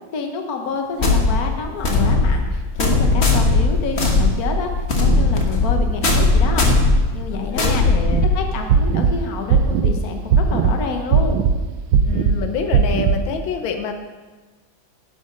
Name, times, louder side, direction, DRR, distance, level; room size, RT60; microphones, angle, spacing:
voice 1, 0.1-6.7 7.1-7.9 8.3-11.4, left 5 dB, 55° left, 4 dB, 1.6 m, -28 dB
sound 1, 1.0-8.7, left 2 dB, 40° left, 1.4 m, -18 dB
voice 2, 7.3-8.3 12.0-13.9, left 6 dB, 90° left, 6 dB, 1.6 m, -27 dB
Cardiac and Pulmonary Sounds, 8.1-8.3 8.7-9.1 9.5-9.9 10.3-10.7 11.1-11.5 11.9-12.3 12.7-13.2, right 7 dB, 80° right, 1.4 m, -16 dB
11.0 x 7.9 x 5.1 m, 1.3 s
omnidirectional pair, 2.1 m